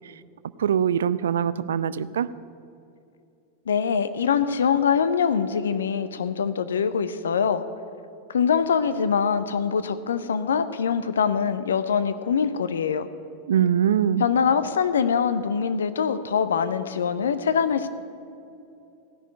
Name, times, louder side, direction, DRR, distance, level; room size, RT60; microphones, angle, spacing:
voice 1, 0.6-2.3 13.5-14.2, right 9 dB, 65° right, 16 dB, 0.4 m, -22 dB
voice 2, 3.7-7.6 8.3-13.1 14.2-17.9, left 6 dB, 65° left, 12 dB, 0.6 m, -23 dB
15.0 x 6.4 x 9.8 m, 2.6 s
figure-of-eight pair, 90°, 0 cm